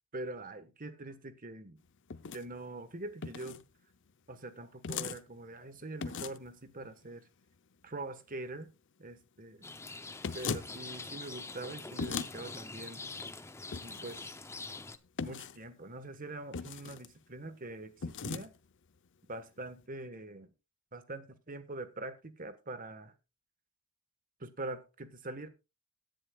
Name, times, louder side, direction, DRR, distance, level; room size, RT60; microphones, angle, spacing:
voice 1, 0.1-1.8 2.3-3.6 4.3-7.3 7.8-8.7 9.0-9.7 10.3-13.0 13.8-14.3 15.2-18.5 19.3-20.5 20.9-23.1 24.4-25.5, right 2 dB, 40° right, 1.3 m, -44 dB
sound 1, 2.1-2.4 3.2-3.6 4.8-5.2 6.0-6.5 10.2-10.7 12.0-12.3 13.7-14.2 15.2-15.6 16.5-17.1 18.0-18.5, left 5 dB, 55° left, 0.7 m, -38 dB
Rain, 9.6-15.0, left 3 dB, 10° left, 0.6 m, -45 dB
17.5 x 10.5 x 2.3 m
head